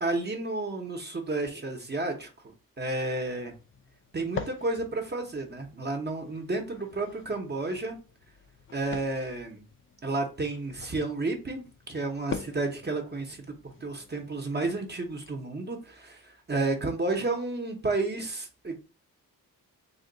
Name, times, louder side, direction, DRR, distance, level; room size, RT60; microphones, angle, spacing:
voice 1, 0.0-3.5 4.1-8.0 8.7-9.6 10.0-18.9, right 2 dB, 30° right, 3 dB, 0.7 m, -31 dB
sound 1, 2.9-15.3, left 5 dB, 40° left, 0.4 m, -45 dB
3.6 x 2.2 x 3.8 m, 0.33 s
wide cardioid pair, 130°, 35 cm